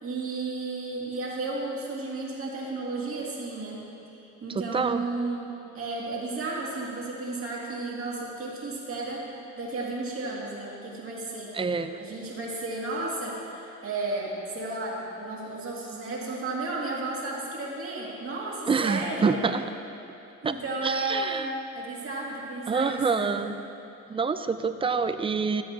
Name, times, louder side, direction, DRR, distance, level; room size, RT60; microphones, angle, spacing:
voice 1, 0.0-3.8 4.1-9.3 9.6-11.5 12.0-19.4 20.4-23.4, right 2 dB, 45° right, -4 dB, 2.1 m, -33 dB
voice 2, 4.5-5.0 11.5-12.0 18.7-19.6 20.4-20.6 20.8-21.5 22.7-23.6 24.1-25.6, right 5 dB, 20° right, 10 dB, 0.4 m, -26 dB
13.0 x 7.7 x 2.8 m, 2.7 s
cardioid pair, 90°, 30 cm